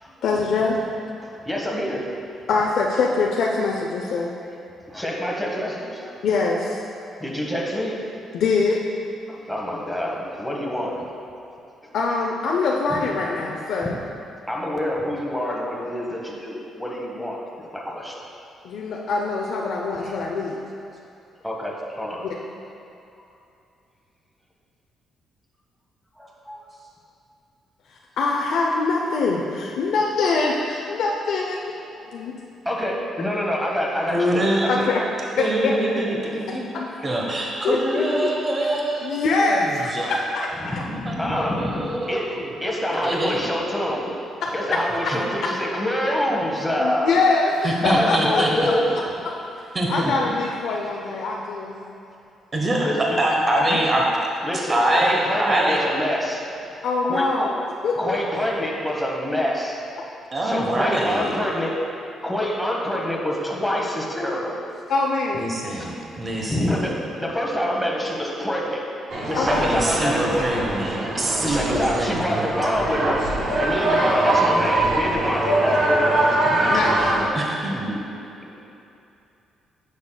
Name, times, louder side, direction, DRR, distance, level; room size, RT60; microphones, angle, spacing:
voice 1, 0.2-0.8 2.5-4.3 6.2-6.8 8.3-8.8 11.9-14.0 18.6-20.6 22.2-22.3 28.2-31.6 32.1-32.3 34.7-35.0 35.4-35.7 36.7-36.9 37.6-38.3 39.0-40.8 45.0-45.1 46.8-48.7 49.2-49.3 49.9-51.8 56.8-57.5 57.8-58.2 64.9-65.4 69.3-69.7 76.7-77.1, left 3 dB, 75° left, -1 dB, 0.5 m, -23 dB
voice 2, 1.2-2.1 4.9-6.2 7.2-8.0 9.3-11.0 11.8-11.9 12.9-13.0 14.5-17.4 17.7-18.2 19.7-20.4 21.4-22.2 26.2-26.6 32.7-34.4 34.7-34.9 37.0-37.1 37.5-37.6 38.7-38.8 40.6-42.2 42.6-44.1 44.5-47.2 47.8-49.0 52.8-53.2 53.7-53.8 54.4-56.4 57.0-57.5 58.0-59.8 60.4-61.8 62.2-64.6 65.8-65.9 66.5-68.8 69.1-70.3 71.4-73.2 73.6-76.3 78.4-78.7, equal, ahead, -3 dB, 1.1 m, -26 dB
voice 3, 34.1-34.7 35.4-36.6 37.0-39.1 39.4-40.1 40.8-42.5 43.0-43.5 45.1-45.2 47.6-48.5 49.7-50.3 52.5-52.9 53.2-54.0 54.7-55.8 60.3-61.4 65.3-66.9 69.5-72.4 76.4-78.1, right 1 dB, 30° right, -1 dB, 1.0 m, -24 dB
sound 1, 69.1-77.3, right 1 dB, 65° right, 1.6 m, -22 dB
9.5 x 6.5 x 2.3 m, 2.7 s
cardioid pair, 90°, 0 cm